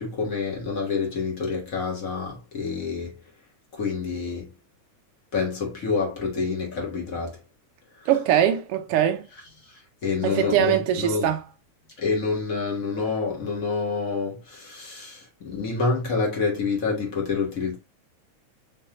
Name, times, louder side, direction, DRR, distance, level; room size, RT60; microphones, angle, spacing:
voice 1, 0.0-3.1 3.7-4.5 5.3-7.4 9.6-11.3 12.0-17.8, left 4 dB, 35° left, 1.4 m, -27 dB
voice 2, 8.1-9.3 10.2-11.4, right 10 dB, 75° right, 1.4 m, -22 dB
5.6 x 3.2 x 2.8 m
omnidirectional pair, 3.4 m